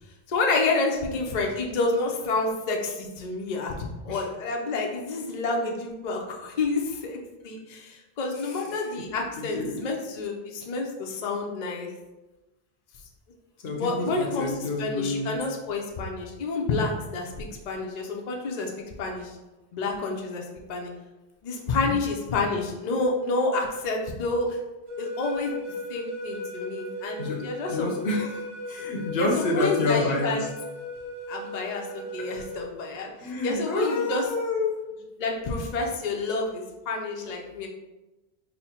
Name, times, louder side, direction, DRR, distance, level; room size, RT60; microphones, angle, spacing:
voice 1, 0.3-3.7 4.0-7.2 7.4-11.9 13.7-18.7 19.0-19.4 19.7-20.9 21.4-24.6 25.0-25.5 25.9-27.9 29.2-30.4 31.3-33.1 33.4-34.2 35.2-37.7, left 3 dB, 50° left, 0 dB, 0.6 m, -29 dB
voice 2, 9.4-9.8 13.6-15.4 21.7-21.9 27.2-30.5 32.3-32.4 33.2-34.8, left 2 dB, 70° left, 1 dB, 0.9 m, -28 dB
sound 1, 24.9-32.7, left 2 dB, 15° right, 1.3 m, -37 dB
4.1 x 2.1 x 4.2 m, 1.1 s
omnidirectional pair, 1.1 m